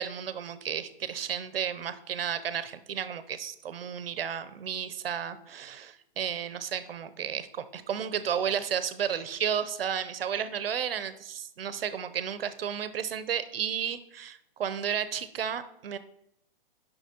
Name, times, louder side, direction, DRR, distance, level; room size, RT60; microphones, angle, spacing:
voice 1, 0.0-16.0, right 8 dB, 75° right, 13 dB, 0.7 m, -33 dB
10.0 x 5.8 x 2.8 m, 0.78 s
hypercardioid pair, 160°, 29 cm